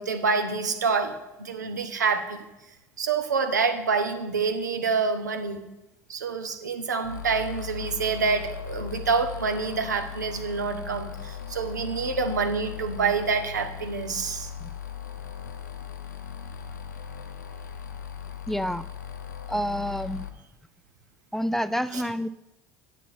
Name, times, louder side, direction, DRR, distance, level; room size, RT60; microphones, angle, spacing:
voice 1, 0.0-2.4 3.0-5.6 6.1-14.5 21.9-22.0, right 5 dB, 85° right, 7 dB, 0.9 m, -27 dB
sound 1, 7.0-20.3, left 8 dB, 85° left, 0.7 m, -38 dB
voice 2, 18.5-18.8 19.5-20.2 21.3-22.3, equal, 5° left, 13 dB, 0.4 m, -28 dB
9.9 x 7.1 x 4.3 m, 0.98 s
hypercardioid pair, 65°, 9 cm